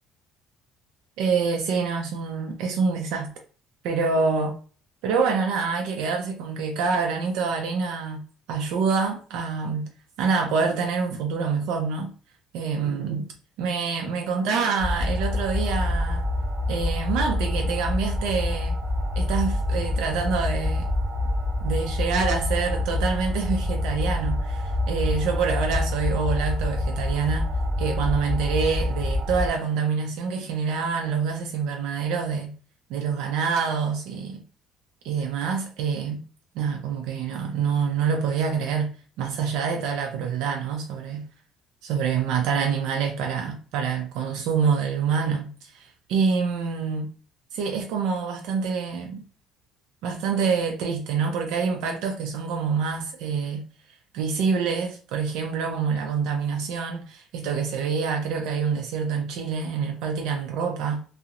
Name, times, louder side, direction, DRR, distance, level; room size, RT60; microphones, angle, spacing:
voice 1, 1.2-3.3 3.8-4.6 5.0-9.9 10.2-12.1 12.5-13.3 13.6-16.2 16.7-18.7 19.2-20.9 21.6-27.5 27.8-32.5 32.9-34.4 35.0-36.2 36.6-41.3 41.8-47.1 47.5-49.2 50.0-53.6 54.1-61.0, right 5 dB, 80° right, 0.4 m, -26 dB
sound 1, 14.8-29.5, left 1 dB, 35° right, 0.7 m, -26 dB
2.7 x 2.0 x 2.4 m
cardioid pair, 155°, 0 cm